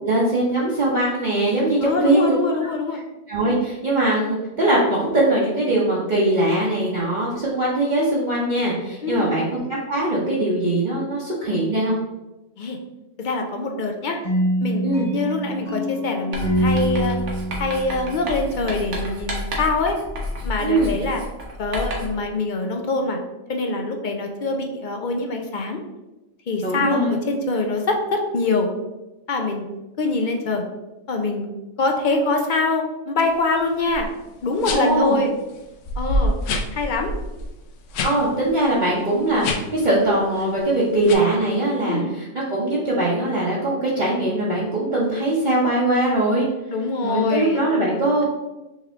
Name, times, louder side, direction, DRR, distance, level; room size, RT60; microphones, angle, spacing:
voice 1, 0.0-2.3 2.6-2.7 3.3-11.9 14.8-15.1 20.6-21.0 26.6-27.2 34.7-35.2 38.0-46.5 47.0-48.3, right 1 dB, 40° right, -7 dB, 0.9 m, -21 dB
voice 2, 1.8-3.0 9.0-9.4 12.6-12.8 13.2-14.2 14.6-14.8 15.1-17.2 17.6-20.0 20.4-21.2 21.6-23.2 23.5-25.8 26.5-28.7 29.3-29.7 30.0-30.6 31.1-31.5 31.8-34.1 34.4-35.3 36.0-36.4 36.7-37.1 41.8-42.1 46.7-47.6, left 3 dB, 55° left, 3 dB, 0.5 m, -24 dB
sound 1, 14.2-19.1, right 1 dB, 35° left, 1.6 m, -25 dB
Writing, 16.3-22.2, left 1 dB, 75° right, 1.3 m, -31 dB
sound 2, 33.9-34.1 34.6-35.0 35.5-35.6 35.9-38.2 38.5-38.6 39.3-39.8 40.3-40.6 41.1-41.2, left 1 dB, 85° left, 0.9 m, -26 dB
4.3 x 3.4 x 3.5 m, 1.0 s
omnidirectional pair, 1.2 m